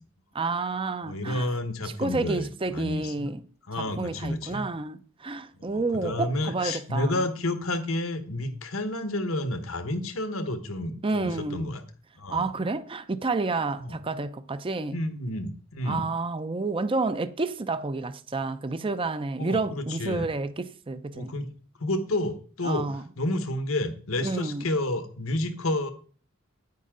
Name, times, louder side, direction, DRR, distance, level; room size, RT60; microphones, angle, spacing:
voice 1, 0.3-1.5 2.0-3.4 3.8-7.2 11.0-11.7 12.3-15.0 15.8-21.3 22.6-23.0 24.2-24.6, right 3 dB, 25° right, 0.5 m, -30 dB
voice 2, 1.0-3.3 3.7-4.6 5.6-11.8 12.2-12.5 13.8-14.0 14.9-16.1 19.4-20.3 21.1-21.5 21.8-22.9 23.2-25.9, left 1 dB, 80° left, 1.3 m, -30 dB
9.4 x 9.4 x 3.8 m
head